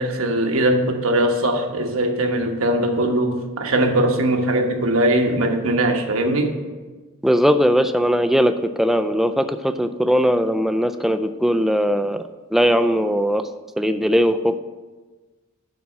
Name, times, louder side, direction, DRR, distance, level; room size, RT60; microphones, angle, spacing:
voice 1, 0.0-6.6, right 1 dB, 70° right, 4 dB, 1.2 m, -20 dB
voice 2, 7.2-12.2 12.5-13.4 13.8-14.6, equal, ahead, 9 dB, 0.3 m, -19 dB
10.5 x 4.1 x 7.4 m, 1.3 s
head